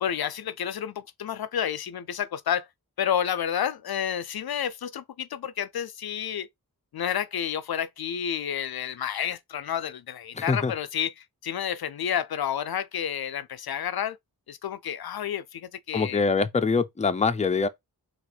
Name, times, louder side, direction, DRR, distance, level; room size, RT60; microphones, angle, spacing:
voice 1, 0.0-2.7 3.0-6.5 6.9-14.2 14.5-16.2, left 9 dB, 70° left, 0.5 m, -30 dB
voice 2, 10.3-10.7 15.9-17.7, left 4 dB, 20° left, 0.5 m, -24 dB
4.3 x 2.5 x 3.9 m
cardioid pair, 45°, 38 cm